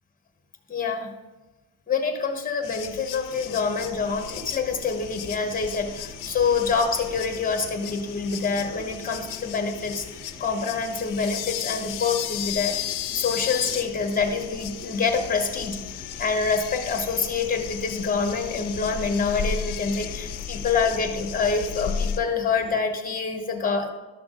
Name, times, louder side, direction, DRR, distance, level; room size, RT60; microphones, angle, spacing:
voice 1, 0.7-1.1 1.9-12.8 13.1-15.8 16.2-23.9, left 5 dB, 20° left, 5 dB, 1.1 m, -26 dB
sound 1, 2.6-22.2, left 9 dB, 55° left, 0.5 m, -35 dB
sound 2, 3.3-22.8, left 1 dB, 5° right, 1.7 m, -46 dB
12.0 x 5.9 x 3.8 m, 1.1 s
cardioid pair, 140°, 40 cm